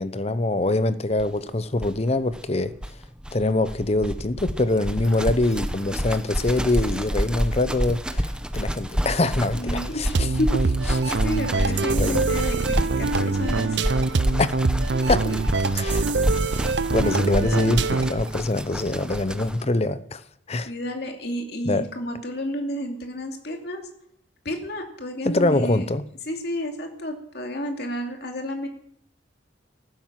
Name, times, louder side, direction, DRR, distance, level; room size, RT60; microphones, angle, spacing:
voice 1, 0.0-2.7 3.3-10.3 12.0-12.2 14.4-14.5 15.1-15.2 15.7-16.1 16.9-20.2 20.5-20.7 21.6-21.9 25.2-26.0, left 2 dB, 35° left, 0.7 m, -24 dB
sound 1, 1.2-1.3 1.5-1.6 1.8-19.6, equal, 5° right, 0.8 m, -29 dB
voice 2, 9.5-10.7 11.1-13.8 14.9-15.4 16.3-16.4 20.7-23.8 24.4-25.8 26.3-28.7, equal, 60° left, 2.6 m, -31 dB
sound 2, 10.1-18.3, right 3 dB, 65° right, 0.6 m, -24 dB
15.5 x 12.5 x 7.5 m
head